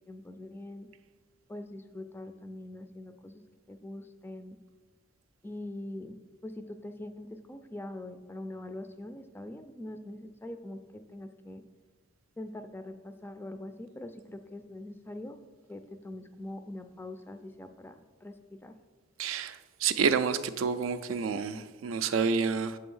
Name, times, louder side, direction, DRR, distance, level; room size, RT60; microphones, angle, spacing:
voice 1, 0.1-0.9 1.5-3.4 3.7-4.6 5.4-6.2 6.4-11.6 12.4-15.4 15.7-18.7, left 1 dB, 10° left, 0.3 m, -43 dB
voice 2, 19.2-22.8, right 6 dB, 75° right, 0.4 m, -29 dB
6.9 x 3.4 x 5.4 m
head